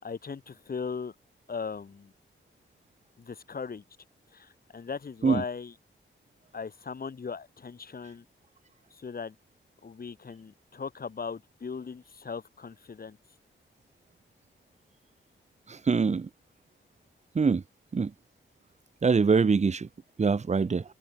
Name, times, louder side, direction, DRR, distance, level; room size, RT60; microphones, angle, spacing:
voice 1, 0.0-1.1 1.5-2.1 3.2-3.8 4.3-5.8 6.5-8.3 8.9-9.4 9.8-13.2, left 5 dB, 45° left, 6.0 m, -38 dB
voice 2, 15.9-16.3 17.3-17.6 17.9-18.1 19.0-19.9 20.2-20.8, right 5 dB, 35° right, 1.3 m, -23 dB
wide cardioid pair, 150°, 21 cm